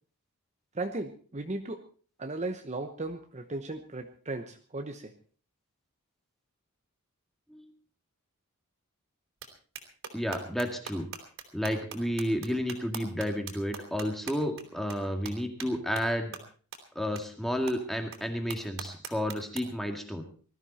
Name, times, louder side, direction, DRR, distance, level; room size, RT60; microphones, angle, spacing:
voice 1, 0.7-1.8 2.2-5.1, right 2 dB, 30° right, 6 dB, 1.0 m, -36 dB
sound 1, 9.4-9.5 9.8-14.6 14.9-15.0 15.3-15.4 15.6-15.7 16.0-16.1 16.3-16.4 16.7-16.8 17.2-17.3 17.7-17.8 18.1-18.2 18.5-19.6, right 6 dB, 65° right, 3.4 m, -40 dB
voice 2, 10.1-11.1 11.5-16.3 17.0-20.2, equal, ahead, 4 dB, 2.0 m, -31 dB
19.5 x 13.5 x 4.2 m, 0.40 s
head